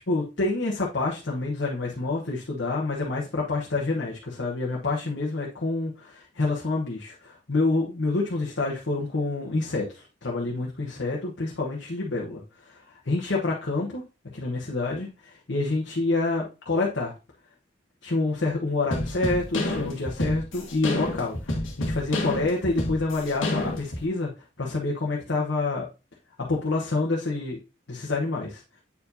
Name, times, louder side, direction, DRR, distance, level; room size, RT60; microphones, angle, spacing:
voice 1, 0.1-14.0 14.3-17.1 18.0-24.3 24.6-25.8 26.4-27.6 27.9-28.6, left 3 dB, 65° left, -2 dB, 1.1 m, -27 dB
sound 1, 18.9-24.0, left 1 dB, 80° left, 1.4 m, -29 dB
8.3 x 4.7 x 2.7 m, 0.29 s
head